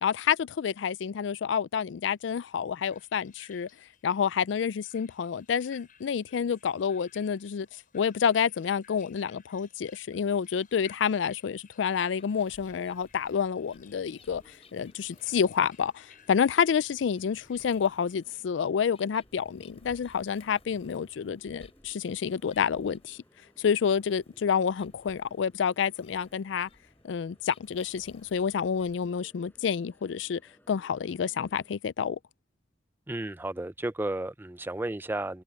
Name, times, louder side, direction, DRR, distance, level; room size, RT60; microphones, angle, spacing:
voice 1, 0.0-3.7 4.0-7.7 7.9-14.4 14.7-23.2 23.6-26.7 27.0-30.4 30.7-32.2, left 7 dB, 80° left, 0.4 m, -28 dB
sound 1, 2.2-18.1, left 8 dB, 50° left, 7.5 m, -61 dB
sound 2, 12.2-29.2, left 2 dB, 35° left, 6.3 m, -60 dB
sound 3, 13.3-31.8, equal, 10° left, 5.8 m, -64 dB
voice 2, 33.1-35.4, right 1 dB, 10° right, 0.5 m, -33 dB
head